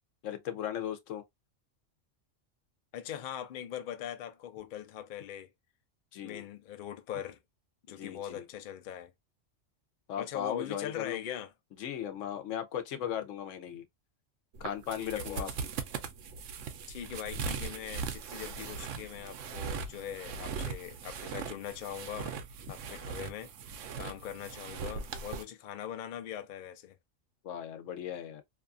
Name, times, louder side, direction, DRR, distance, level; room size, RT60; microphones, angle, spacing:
voice 1, 0.2-1.2 6.1-6.4 7.9-8.4 10.1-11.2 11.8-13.9 14.6-15.5 27.4-28.4, left 9 dB, 80° left, 1.0 m, -37 dB
voice 2, 2.9-5.5 6.2-7.4 7.9-9.1 10.2-11.5 15.0-15.5 16.9-22.4 22.7-23.5 24.0-27.0, left 10 dB, 60° left, 0.5 m, -41 dB
sound 1, 14.5-25.4, right 6 dB, 80° right, 0.9 m, -39 dB
2.7 x 2.3 x 2.4 m
omnidirectional pair, 1.3 m